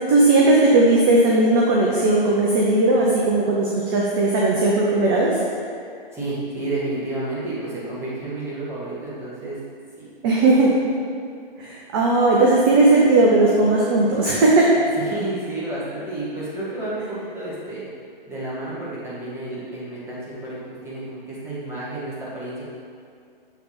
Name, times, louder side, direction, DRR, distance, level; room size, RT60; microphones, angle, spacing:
voice 1, 0.1-5.4 10.2-10.7 11.6-14.7, right 2 dB, 25° right, -3 dB, 0.5 m, -17 dB
voice 2, 6.1-9.6 10.0-10.1 10.4-10.7 15.0-17.8 18.3-22.6, right 2 dB, 10° right, -9 dB, 1.5 m, -31 dB
7.0 x 3.4 x 4.3 m, 2.3 s
figure-of-eight pair, 125°, 29 cm